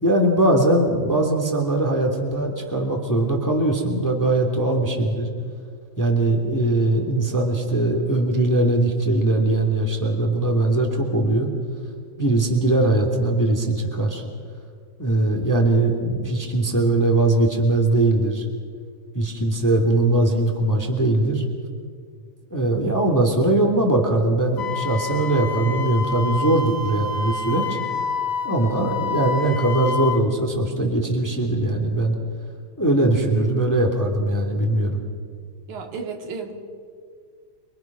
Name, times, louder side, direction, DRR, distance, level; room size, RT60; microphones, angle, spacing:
voice 1, 0.0-5.3 6.0-11.5 12.2-14.2 15.0-18.4 19.1-21.4 22.5-27.8 28.4-32.1 32.8-35.0, right 2 dB, 5° left, 1 dB, 2.4 m, -21 dB
Wind instrument woodwind instrument, 24.6-30.2, left 4 dB, 55° left, 2.0 m, -28 dB
voice 2, 35.7-36.5, right 5 dB, 75° right, 3 dB, 3.7 m, -32 dB
28.5 x 23.5 x 6.1 m, 2.1 s
omnidirectional pair, 3.5 m